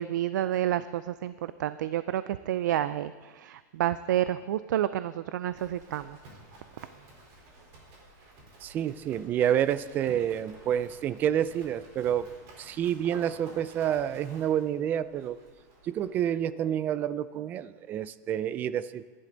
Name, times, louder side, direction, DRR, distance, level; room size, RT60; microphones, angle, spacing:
voice 1, 0.0-6.2, right 12 dB, 85° right, 14 dB, 0.4 m, -29 dB
Livestock farm animals working animals, 5.4-16.2, right 1 dB, 35° right, 4.1 m, -52 dB
voice 2, 8.6-12.3 12.6-15.4 15.8-19.0, right 10 dB, 20° right, 16 dB, 0.3 m, -28 dB
25.0 x 11.5 x 3.9 m, 1.4 s
supercardioid pair, 170°, 10 cm